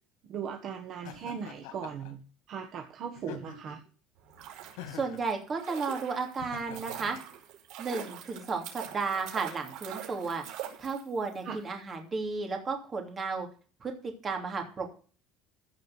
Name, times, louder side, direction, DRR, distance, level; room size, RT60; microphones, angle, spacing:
voice 1, 0.2-2.2 2.5-3.8 11.4-11.6, right 7 dB, 40° right, 3 dB, 1.5 m, -38 dB
Laughter, 1.0-2.1 3.1-3.9 4.8-5.3 6.4-7.2, left 9 dB, 90° left, 2.7 m, -45 dB
sound 1, 4.2-11.4 11.6-11.7, right 11 dB, 60° right, 5.1 m, -43 dB
voice 2, 4.9-7.2 7.8-10.4 10.8-13.5 13.8-14.9, right 4 dB, 20° right, 3 dB, 2.9 m, -33 dB
15.5 x 5.2 x 8.0 m, 0.40 s
cardioid pair, 165°, 0 cm